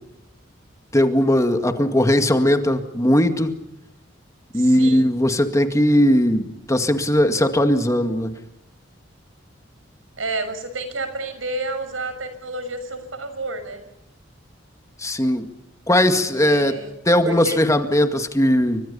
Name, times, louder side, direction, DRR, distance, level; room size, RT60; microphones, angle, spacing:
voice 1, 0.9-3.5 4.5-8.3 15.0-15.5 15.9-16.8 17.1-18.8, left 1 dB, 15° left, 7 dB, 2.0 m, -18 dB
voice 2, 4.5-5.1 10.2-13.8 16.1-16.9 17.2-17.6, right 2 dB, 90° right, 10 dB, 6.3 m, -30 dB
30.0 x 25.0 x 5.6 m, 0.84 s
head